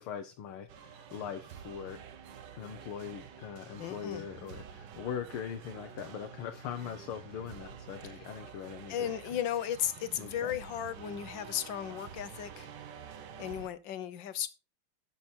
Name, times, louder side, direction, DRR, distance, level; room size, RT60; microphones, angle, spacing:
voice 1, 0.0-2.0 2.5-9.4 10.2-10.5, left 8 dB, 80° left, 1.8 m, -41 dB
sound 1, 0.7-13.7, right 8 dB, 60° right, 1.4 m, -49 dB
voice 2, 3.8-4.2 8.9-12.7 13.4-14.5, left 10 dB, 65° left, 1.5 m, -35 dB
14.0 x 6.1 x 4.4 m
omnidirectional pair, 2.4 m